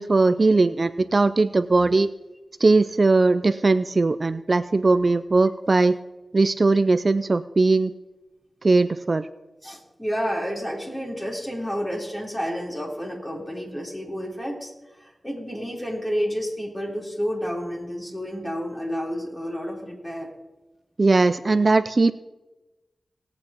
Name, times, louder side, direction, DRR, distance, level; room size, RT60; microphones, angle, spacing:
voice 1, 0.0-2.1 2.6-6.0 6.3-7.9 8.6-9.3 21.0-22.1, right 3 dB, 50° right, 12 dB, 0.4 m, -19 dB
voice 2, 9.6-20.3, equal, 15° left, -2 dB, 3.8 m, -30 dB
19.5 x 8.6 x 3.0 m, 1.1 s
cardioid pair, 45°, 0 cm